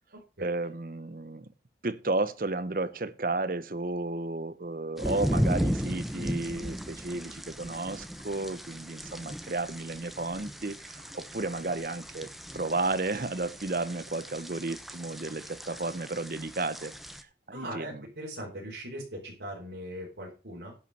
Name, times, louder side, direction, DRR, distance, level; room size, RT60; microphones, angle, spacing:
voice 1, 0.4-1.5 1.8-16.9 17.5-18.1, right 2 dB, 50° right, 0.8 m, -33 dB
sound 1, 5.0-17.2, equal, ahead, 0.7 m, -36 dB
voice 2, 17.5-20.7, right 1 dB, 85° right, 4.4 m, -40 dB
10.5 x 5.6 x 6.7 m
head